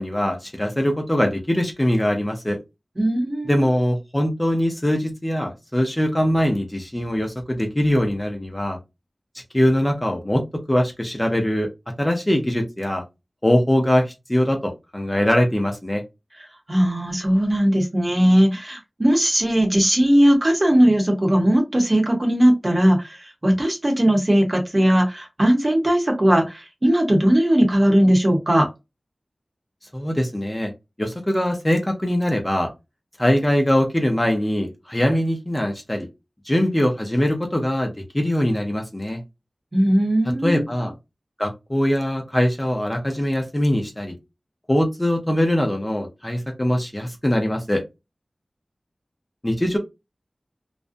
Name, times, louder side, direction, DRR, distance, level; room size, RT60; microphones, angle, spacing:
voice 1, 0.0-2.6 3.5-8.8 9.5-11.7 12.0-13.0 13.4-16.0 29.9-30.7 31.0-32.7 33.2-36.1 36.5-39.2 40.4-40.9 41.4-44.2 44.7-47.8 49.4-49.8, equal, 20° left, 0.6 m, -22 dB
voice 2, 3.0-3.7 16.7-28.7 39.7-40.7, equal, 40° right, 0.9 m, -18 dB
2.5 x 2.1 x 2.5 m
wide cardioid pair, 60°, 0 cm